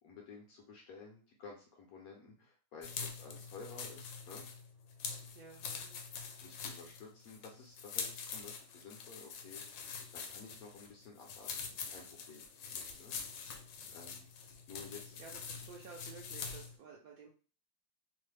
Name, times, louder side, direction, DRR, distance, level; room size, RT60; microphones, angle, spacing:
voice 1, 0.0-4.5 6.4-11.5 11.9-13.1 13.9-14.3 14.7-15.2, left 4 dB, 65° left, 0 dB, 1.0 m, -53 dB
sound 1, 2.8-16.7, left 6 dB, 85° left, 1.3 m, -45 dB
voice 2, 5.3-6.0 15.2-17.3, right 5 dB, 70° right, -2 dB, 0.8 m, -53 dB
3.1 x 2.0 x 3.2 m, 0.37 s
omnidirectional pair, 2.0 m